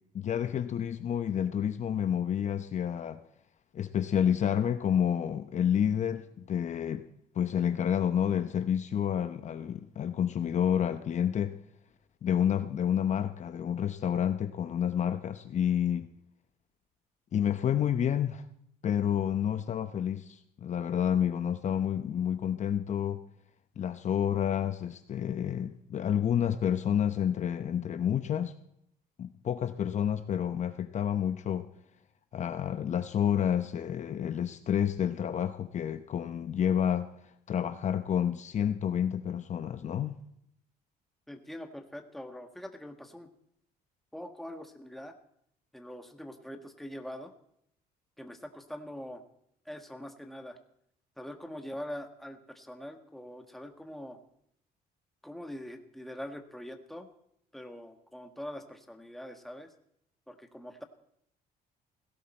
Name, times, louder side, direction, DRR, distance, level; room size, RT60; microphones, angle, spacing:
voice 1, 0.1-3.2 3.7-7.1 7.3-11.5 12.2-16.1 17.3-18.5 18.8-23.2 23.8-28.5 29.2-31.7 32.3-37.1 37.5-40.2, left 9 dB, 45° left, 10 dB, 0.8 m, -29 dB
voice 2, 41.3-43.3 44.1-45.1 45.7-47.3 48.2-49.2 49.6-50.6 51.2-54.2 55.2-57.1 57.5-59.7 60.3-60.8, equal, ahead, 5 dB, 1.6 m, -43 dB
17.0 x 16.5 x 4.4 m, 0.74 s
cardioid pair, 110°, 17 cm